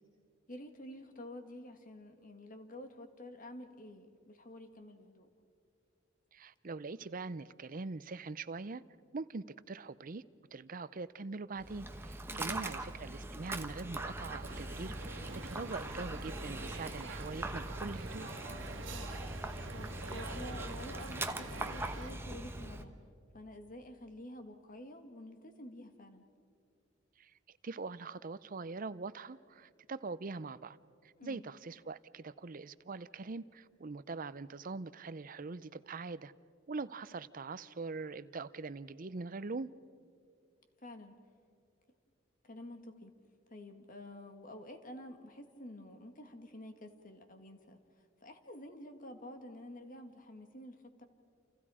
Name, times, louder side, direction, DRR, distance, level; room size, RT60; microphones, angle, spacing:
voice 1, 0.5-5.3 12.3-12.7 18.9-19.2 19.7-22.9 23.3-26.2 31.2-31.4 40.8-41.1 42.4-43.1 43.5-47.8 48.2-51.0, left 1 dB, 45° left, 6 dB, 1.9 m, -49 dB
voice 2, 6.3-8.8 9.1-10.2 10.5-18.3 27.2-30.8 31.0-36.3 36.7-39.7, right 3 dB, 45° right, 15 dB, 0.6 m, -43 dB
Dog, 11.6-22.8, right 2 dB, 10° right, 1.1 m, -42 dB
sound 1, 14.4-22.1, right 2 dB, 65° right, 2.0 m, -46 dB
29.0 x 28.5 x 4.9 m, 2.3 s
head